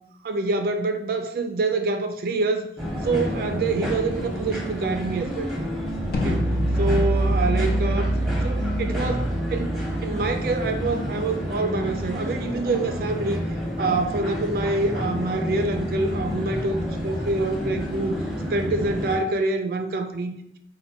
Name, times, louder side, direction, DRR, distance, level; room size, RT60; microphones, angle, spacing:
voice 1, 0.2-2.7 3.0-5.5 6.2-6.4 6.7-8.1 8.4-9.8 10.0-13.4 13.8-18.2 18.5-20.6, right 3 dB, 55° right, 7 dB, 0.3 m, -26 dB
sound 1, 2.8-19.2, equal, ahead, 0.8 m, -29 dB
sound 2, 6.1-12.1, right 1 dB, 55° left, 0.6 m, -26 dB
4.2 x 2.1 x 4.3 m, 0.75 s
head